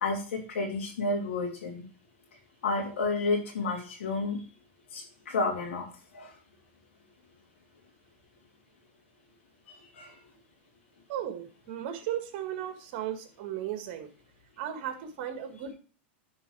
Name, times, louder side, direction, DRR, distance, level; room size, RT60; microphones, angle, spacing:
voice 1, 0.0-1.8 2.6-4.4 4.9-5.9 6.1-6.3 9.7-10.2, left 3 dB, 90° left, 1 dB, 3.0 m, -31 dB
voice 2, 11.1-14.1 14.6-15.7, right 10 dB, 55° right, 7 dB, 1.7 m, -36 dB
10.0 x 4.5 x 4.7 m, 0.37 s
supercardioid pair, 130°, 6 cm